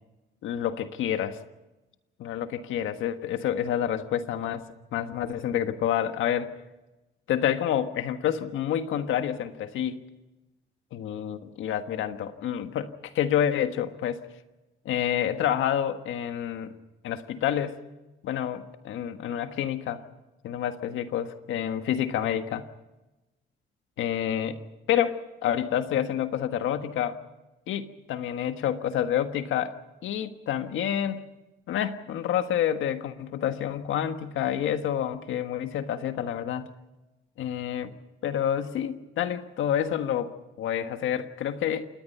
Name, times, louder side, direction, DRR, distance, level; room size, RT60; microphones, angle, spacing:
voice 1, 0.4-1.4 2.2-6.5 7.3-10.0 10.9-14.2 14.8-16.7 17.0-17.8 18.2-20.0 20.4-22.7 24.0-24.6 24.9-27.2 27.7-29.8 30.0-31.2 31.7-36.7 37.4-37.9 38.2-41.9, left 10 dB, 80° left, 9 dB, 1.5 m, -28 dB
27.5 x 19.5 x 5.6 m, 1.1 s
cardioid pair, 90°, 20 cm